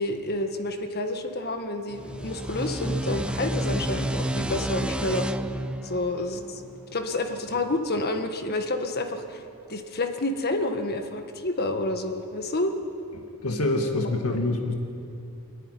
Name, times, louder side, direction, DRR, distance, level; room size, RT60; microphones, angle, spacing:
voice 1, 0.0-5.3 5.8-6.6 6.9-9.4 9.7-12.7, left 2 dB, 45° left, 6 dB, 1.5 m, -29 dB
sound 1, 1.9-7.2, right 1 dB, 5° right, 0.4 m, -30 dB
voice 2, 13.2-14.7, left 2 dB, 75° left, 3 dB, 1.9 m, -26 dB
26.0 x 10.0 x 9.9 m, 2.6 s
head